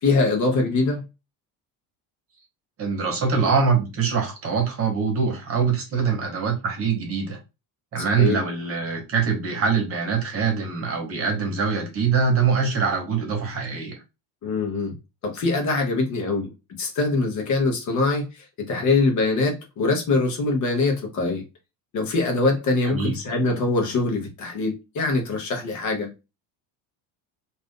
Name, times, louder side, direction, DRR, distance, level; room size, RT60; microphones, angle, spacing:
voice 1, 0.0-1.0 8.0-8.4 14.4-15.0 15.2-21.4 21.9-26.1, left 3 dB, 45° left, 0.9 m, -23 dB
voice 2, 2.8-7.4 7.9-13.9 22.8-23.1, right 5 dB, 35° right, 1.0 m, -23 dB
2.5 x 2.5 x 3.5 m
cardioid pair, 150°, 41 cm